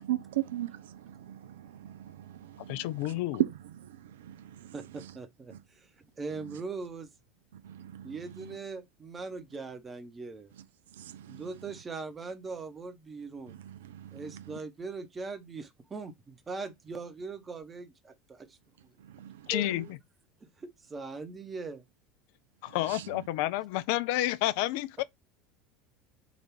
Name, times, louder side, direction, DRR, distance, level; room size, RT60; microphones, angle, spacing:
voice 1, 0.0-3.6 4.2-5.2 6.3-6.6 7.6-8.6 11.0-11.7 13.5-14.6 19.1-19.9 22.8-23.3, right 13 dB, 65° right, 0.3 m, -38 dB
voice 2, 2.7-3.4 19.5-20.0 22.6-25.0, left 16 dB, 55° left, 0.3 m, -30 dB
voice 3, 4.7-7.1 8.0-10.5 11.3-13.5 14.1-18.6 19.5-19.9 20.4-21.8, right 4 dB, 25° right, 0.9 m, -41 dB
4.0 x 2.5 x 4.5 m
figure-of-eight pair, 70°, 0 cm